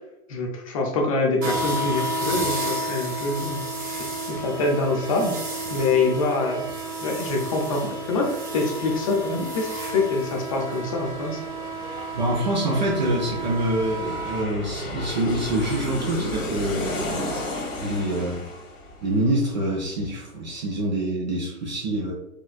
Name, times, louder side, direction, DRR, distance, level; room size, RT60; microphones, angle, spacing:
voice 1, 0.3-6.7 7.0-11.4, left 3 dB, 25° left, 1 dB, 0.6 m, -25 dB
sound 1, 1.4-14.4, right 1 dB, 70° right, 1.4 m, -31 dB
Aircraft, 8.5-8.6 8.9-20.2 20.5-20.6, left 1 dB, 60° left, 1.2 m, -34 dB
voice 2, 12.1-18.4 19.0-22.1, right 1 dB, 30° right, -3 dB, 0.6 m, -26 dB
4.3 x 3.3 x 2.3 m, 0.92 s
figure-of-eight pair, 120°, 45 cm